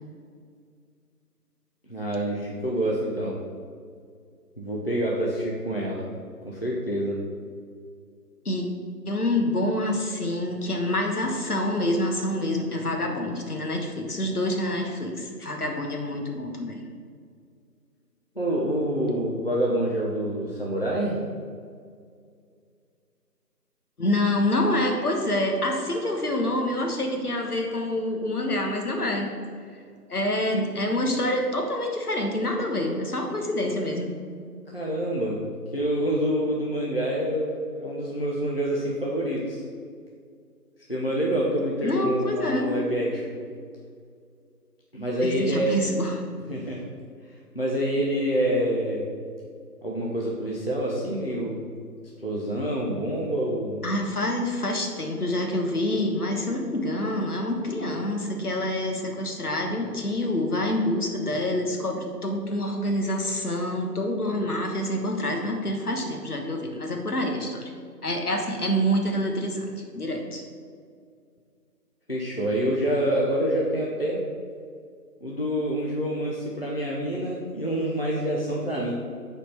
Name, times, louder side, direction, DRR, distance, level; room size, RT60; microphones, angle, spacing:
voice 1, 1.9-3.4 4.6-6.1 6.4-7.2 18.4-21.2 34.7-35.4 35.7-39.6 40.9-43.3 44.9-45.8 46.5-46.8 47.5-49.0 49.8-51.6 52.2-53.8 72.1-74.3 75.2-78.9, right 1 dB, 35° left, -4 dB, 0.7 m, -27 dB
voice 2, 9.1-16.8 24.0-29.3 30.1-34.1 41.8-42.8 45.2-46.2 53.8-67.7 68.0-69.7 69.9-70.4, left 1 dB, 65° left, 2 dB, 1.4 m, -27 dB
7.9 x 4.4 x 5.7 m, 2.2 s
figure-of-eight pair, 180°, 49 cm